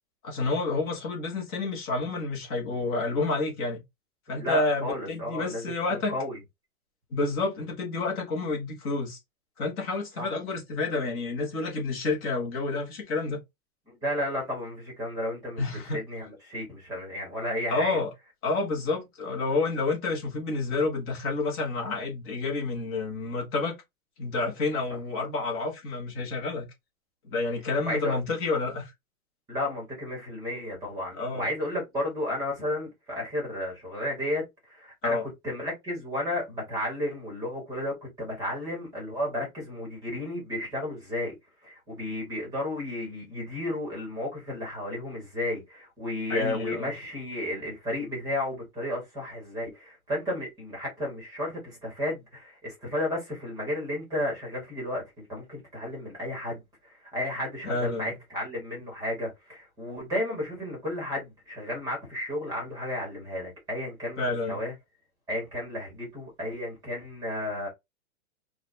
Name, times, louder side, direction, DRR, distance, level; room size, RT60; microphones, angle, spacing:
voice 1, 0.2-3.8 4.3-6.2 7.1-9.2 9.6-13.4 15.6-16.0 17.7-18.1 18.4-23.8 24.2-26.7 27.2-28.9 31.1-31.5 35.0-35.2 46.3-46.9 57.6-58.2 64.2-64.6, left 3 dB, 15° left, 0.8 m, -29 dB
voice 2, 4.3-6.4 10.2-10.3 13.9-15.6 15.9-18.0 24.9-25.0 27.8-28.2 29.5-35.2 35.4-41.3 41.6-64.7 65.3-67.7, left 1 dB, 10° right, 1.1 m, -33 dB
4.7 x 2.2 x 2.5 m
hypercardioid pair, 170°, 42 cm